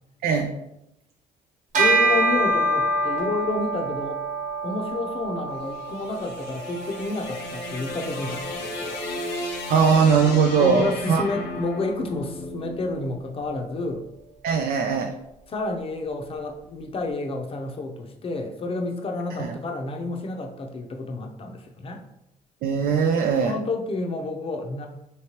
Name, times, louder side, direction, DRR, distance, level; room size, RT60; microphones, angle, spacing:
Bell, 1.7-11.4, right 2 dB, 50° right, 1.1 m, -27 dB
voice 1, 1.8-4.2 4.6-9.0 10.5-14.1 15.5-22.0 23.3-24.9, left 2 dB, 35° left, 3 dB, 0.6 m, -30 dB
sound 1, 5.6-13.9, left 2 dB, 80° left, 0.9 m, -35 dB
voice 2, 9.7-11.2 14.4-15.1 19.4-19.5 22.6-23.5, right 6 dB, 70° right, 4 dB, 0.4 m, -20 dB
3.1 x 3.1 x 2.9 m, 0.85 s
cardioid pair, 80°, 16 cm